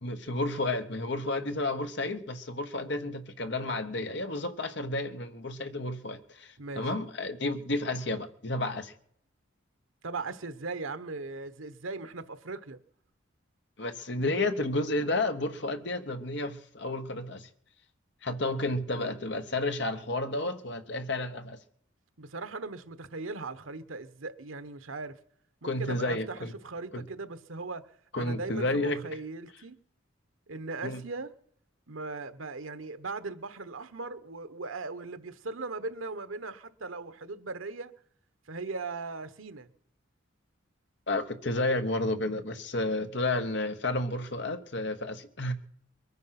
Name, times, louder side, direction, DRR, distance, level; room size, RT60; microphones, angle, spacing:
voice 1, 0.0-8.9 13.8-17.5 18.2-21.6 25.6-26.5 26.9-27.0 28.1-29.0 30.8-31.0 41.1-45.5, left 2 dB, 60° left, 1.2 m, -31 dB
voice 2, 6.6-6.9 10.0-12.8 22.2-25.2 25.6-29.8 30.5-31.3 31.9-37.9 38.5-39.7, right 3 dB, 90° right, 1.1 m, -39 dB
22.5 x 9.4 x 5.9 m
head